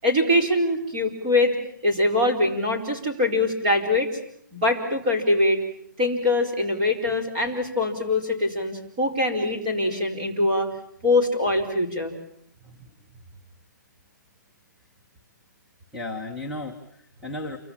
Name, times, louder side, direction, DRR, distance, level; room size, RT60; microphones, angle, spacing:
voice 1, 0.0-1.5 1.8-4.1 4.5-5.6 6.0-10.7 11.0-12.2, left 2 dB, 25° right, 2 dB, 4.8 m, -23 dB
voice 2, 15.9-17.6, left 2 dB, ahead, -1 dB, 1.1 m, -35 dB
28.5 x 24.5 x 7.3 m, 0.68 s
hypercardioid pair, 175°, 10 cm